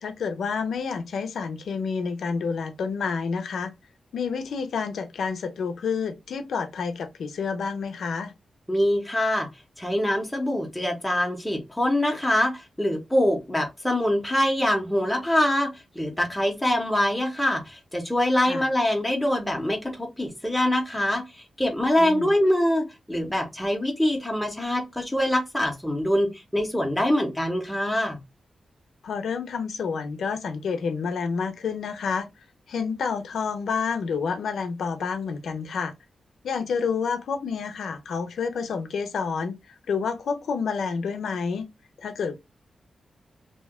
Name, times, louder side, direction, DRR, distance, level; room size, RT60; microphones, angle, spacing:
voice 1, 0.0-3.7 4.1-8.3 18.4-18.6 22.0-22.3 29.0-32.3 32.7-35.9 36.4-39.6 39.9-41.7 42.0-42.3, left 5 dB, 85° left, 0.6 m, -29 dB
voice 2, 8.7-9.5 9.8-15.7 15.9-21.2 21.6-28.2, left 1 dB, 5° left, 0.7 m, -24 dB
2.8 x 2.2 x 3.4 m
wide cardioid pair, 155°, 0 cm